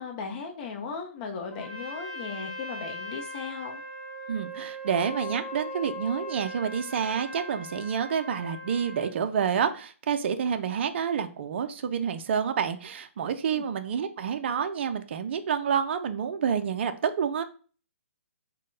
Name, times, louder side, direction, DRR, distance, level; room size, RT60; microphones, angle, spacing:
voice 1, 0.0-3.8 13.5-13.6, left 5 dB, 35° left, 3 dB, 0.6 m, -37 dB
Trumpet, 1.5-9.2, equal, 10° left, 1.2 m, -39 dB
voice 2, 4.3-17.4, right 7 dB, 50° right, 9 dB, 0.4 m, -28 dB
3.7 x 2.1 x 3.8 m, 0.39 s
hypercardioid pair, 140°, 8 cm